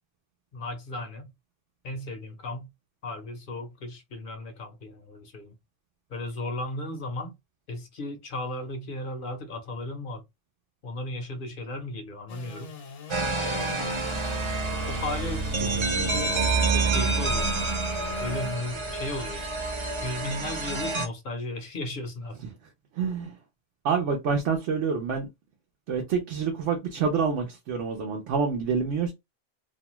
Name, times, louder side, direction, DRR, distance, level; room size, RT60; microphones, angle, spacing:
voice 1, 0.5-1.3 1.8-2.7 3.0-5.6 6.1-7.3 7.7-10.2 10.8-12.7 14.8-16.4 16.7-17.5 18.2-19.5 20.0-22.4, left 2 dB, 55° left, 0.7 m, -35 dB
Engine / Sawing, 12.3-18.6, left 5 dB, 70° left, 1.0 m, -41 dB
sound 1, 13.1-21.1, right 3 dB, 40° right, 0.4 m, -28 dB
voice 2, 23.0-23.3 23.8-25.3 25.9-29.1, right 5 dB, 70° right, 1.0 m, -27 dB
2.6 x 2.2 x 2.9 m
omnidirectional pair, 1.3 m